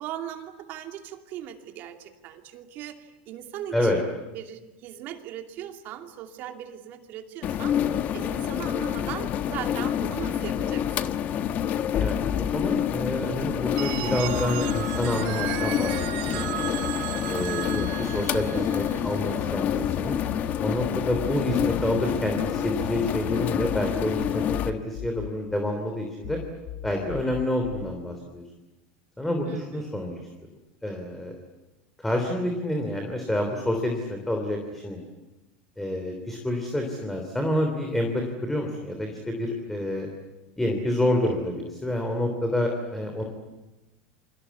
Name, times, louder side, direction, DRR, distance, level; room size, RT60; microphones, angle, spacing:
voice 1, 0.0-11.1 29.5-29.9, right 11 dB, 45° right, 5 dB, 2.7 m, -39 dB
sound 1, 7.4-24.7, left 9 dB, 35° left, 1.2 m, -28 dB
voice 2, 12.0-16.8 17.3-20.2 20.6-26.4 26.8-28.4 29.2-30.2 30.8-31.3 32.0-35.0 35.8-40.1 40.6-43.2, left 1 dB, 5° left, 3 dB, 3.2 m, -28 dB
Telephone, 13.8-19.5, right 15 dB, 60° right, 1.7 m, -35 dB
sound 2, 14.2-16.1 16.4-22.9 23.2-25.9 26.2-27.9, left 13 dB, 70° left, 2.3 m, -38 dB
28.5 x 24.5 x 8.4 m, 1.0 s
supercardioid pair, 155°, 5 cm